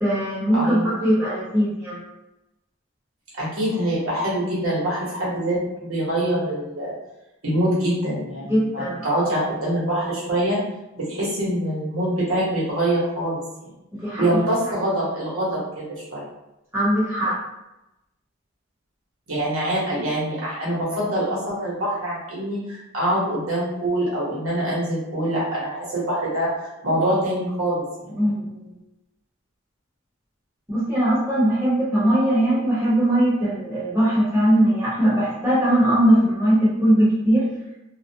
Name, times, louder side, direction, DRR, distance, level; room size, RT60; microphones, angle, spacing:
voice 1, 0.0-2.0 8.5-9.2 14.0-14.4 16.7-17.3 28.2-28.4 30.7-37.4, right 1 dB, 10° right, -10 dB, 1.0 m, -20 dB
voice 2, 0.5-0.9 3.3-6.9 7.4-10.6 10.9-13.7 14.2-16.2 19.3-26.5 26.8-28.2, right 1 dB, 90° right, -6 dB, 1.1 m, -24 dB
2.4 x 2.2 x 2.7 m, 0.93 s
head